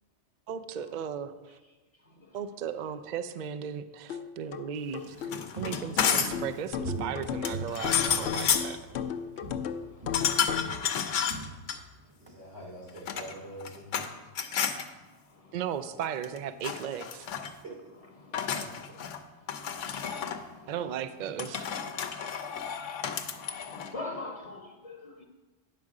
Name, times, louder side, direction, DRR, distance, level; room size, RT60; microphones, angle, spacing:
voice 1, 0.5-1.3 2.3-5.3 5.6-8.8 15.5-17.3 20.7-21.7, right 8 dB, 65° right, 12 dB, 0.4 m, -36 dB
sound 1, 4.1-10.8, left 7 dB, 70° left, 0.8 m, -36 dB
Walk footsteps, 4.8-9.1 9.4-9.7 10.0-12.3 12.6-12.7, right 3 dB, 25° right, 0.8 m, -42 dB
sound 2, 5.2-6.5 7.4-8.8 10.1-11.8 12.9-14.1 14.3-14.8 16.0-16.4 16.6-17.5 18.3-19.2 19.5-20.4 21.4-23.9, left 8 dB, 90° left, 1.1 m, -31 dB
voice 2, 12.2-14.1 17.6-17.7 18.5-18.7, right 1 dB, 85° right, -5 dB, 3.2 m, -44 dB
voice 3, 23.5-25.2, left 2 dB, 35° left, 2 dB, 0.8 m, -40 dB
9.4 x 6.3 x 4.8 m, 1.2 s
omnidirectional pair, 1.2 m